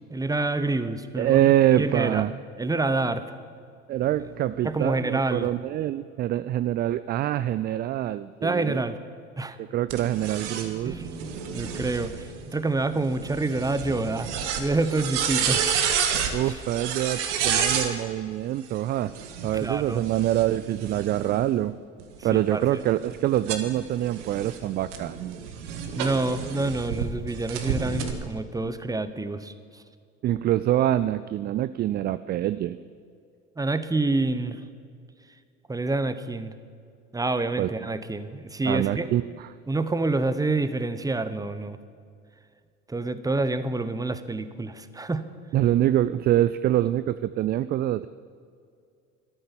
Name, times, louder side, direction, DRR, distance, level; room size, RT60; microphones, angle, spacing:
voice 1, 0.1-1.4 1.8-2.2 2.6-3.4 4.6-5.5 8.4-9.0 9.4-9.6 10.8-15.7 19.5-20.0 22.3-22.8 26.0-29.8 33.6-34.6 35.7-36.5 37.1-39.1 39.7-41.8 42.9-45.3, right 2 dB, 10° right, 12 dB, 0.9 m, -27 dB
voice 2, 1.2-2.3 3.9-8.8 9.6-11.0 16.3-19.1 19.4-21.8 22.2-25.4 30.2-32.8 37.6-37.7 38.6-39.5 45.5-48.1, right 13 dB, 25° right, 15 dB, 0.3 m, -25 dB
sound 1, 9.9-17.9 19.0-21.4 22.0-27.1 27.5-28.1, right 7 dB, 70° right, 1.7 m, -30 dB
13.5 x 12.5 x 7.2 m, 2.3 s
figure-of-eight pair, 65°, 38 cm